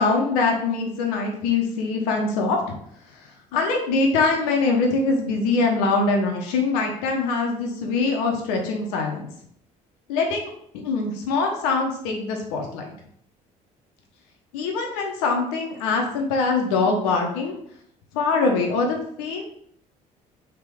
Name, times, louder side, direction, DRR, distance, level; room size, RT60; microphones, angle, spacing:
voice 1, 0.0-2.8 3.1-9.3 10.1-12.8 14.5-17.6 18.1-19.5, left 3 dB, 80° left, 2 dB, 0.7 m, -23 dB
3.5 x 2.9 x 4.7 m, 0.68 s
hypercardioid pair, 55°, 19 cm